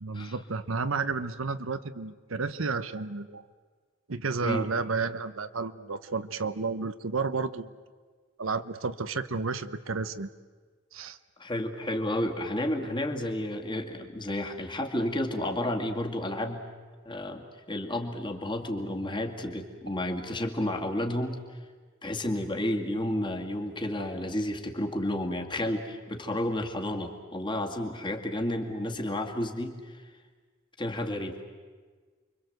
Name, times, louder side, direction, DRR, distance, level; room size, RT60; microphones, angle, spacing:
voice 1, 0.0-3.5 4.1-7.7 8.4-10.3 10.9-11.2, right 4 dB, 85° right, 12 dB, 1.0 m, -31 dB
voice 2, 11.4-16.6 17.1-21.4 22.0-30.0 30.8-31.4, left 1 dB, 25° left, 4 dB, 2.3 m, -31 dB
29.0 x 23.5 x 8.0 m, 1.5 s
head